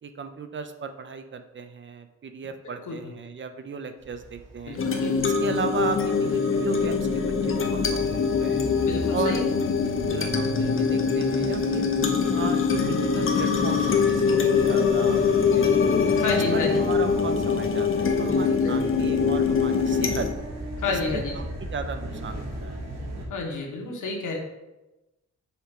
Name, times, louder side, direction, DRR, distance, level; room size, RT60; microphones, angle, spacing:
voice 1, 0.0-4.8 5.2-8.7 9.1-9.4 10.0-11.9 12.3-15.3 15.5-16.0 16.5-20.3 20.9-21.5 21.7-22.8, right 5 dB, 40° right, 8 dB, 0.5 m, -35 dB
sound 1, 4.0-23.3, right 1 dB, 60° right, 1.5 m, -38 dB
voice 2, 4.7-5.2 8.8-9.4 16.1-16.8 18.2-18.9 20.8-21.3 23.3-24.4, left 3 dB, 85° left, 0 dB, 1.4 m, -30 dB
sound 2, 4.8-20.3, left 5 dB, 45° left, 0.7 m, -23 dB
5.7 x 4.4 x 5.0 m, 1.0 s
wide cardioid pair, 155°, 30 cm